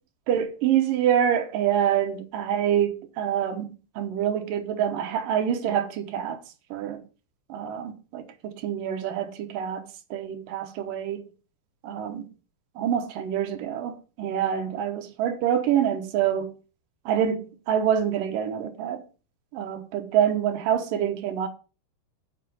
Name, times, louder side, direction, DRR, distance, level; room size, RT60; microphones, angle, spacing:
voice 1, 0.3-3.7 4.0-6.4 6.7-7.0 7.5-11.3 11.8-12.3 12.8-16.5 17.1-19.0 19.5-21.5, right 9 dB, 65° right, 2.4 m, -26 dB
7.4 x 7.1 x 6.9 m
omnidirectional pair, 4.7 m